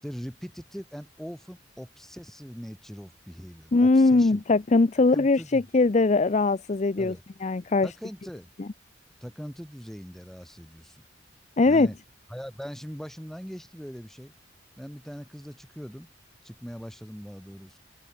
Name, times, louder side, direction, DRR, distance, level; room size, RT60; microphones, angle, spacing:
voice 1, 0.0-4.4 5.1-5.7 7.0-7.2 7.8-8.5 9.2-11.0 11.7-12.0 12.3-14.3 14.8-16.1 16.4-17.8, equal, ahead, 6.8 m, -41 dB
voice 2, 3.7-7.1 7.4-7.9 11.6-11.9, left 3 dB, 40° left, 0.6 m, -21 dB
head